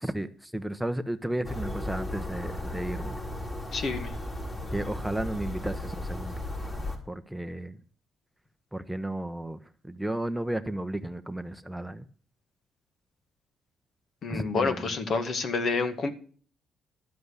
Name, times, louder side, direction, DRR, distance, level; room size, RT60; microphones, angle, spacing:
voice 1, 0.0-3.2 4.7-6.4 7.1-7.8 8.7-9.6 9.8-12.0 14.3-14.9, right 1 dB, 5° right, 0.8 m, -33 dB
sound 1, 1.4-7.0, left 1 dB, 30° left, 5.0 m, -35 dB
voice 2, 3.7-4.1 14.2-16.1, left 4 dB, 55° left, 2.0 m, -28 dB
12.5 x 7.8 x 6.8 m
cardioid pair, 90°, 0 cm